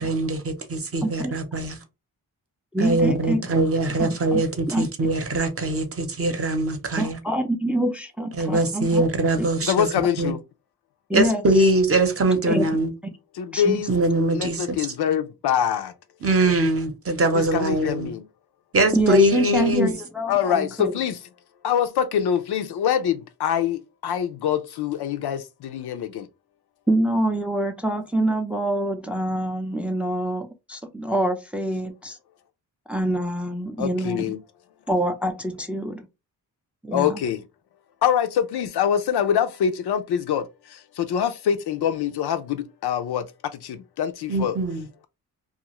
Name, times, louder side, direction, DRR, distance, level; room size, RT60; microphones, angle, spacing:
voice 1, 0.0-1.8 2.8-7.2 8.3-9.9 10.2-10.3 11.1-12.9 13.9-14.9 16.2-18.1 18.7-19.9 44.3-44.9, right 1 dB, 35° right, 0.7 m, -22 dB
voice 2, 2.7-3.6 4.0-4.4 4.7-4.9 7.0-9.0 11.1-11.4 12.5-12.7 13.5-13.8 18.9-21.0 26.9-32.2 32.9-34.4 34.9-36.1 36.8-37.2, right 1 dB, 5° right, 0.4 m, -25 dB
voice 3, 9.7-10.4 12.5-12.8 13.4-13.9 14.3-15.9 17.3-18.2 20.3-21.2 21.6-26.2 33.8-34.4 36.9-37.4 38.0-40.5 41.0-43.2 43.6-44.6, left 9 dB, 80° left, 0.5 m, -24 dB
2.5 x 2.4 x 2.9 m
cardioid pair, 80°, 38 cm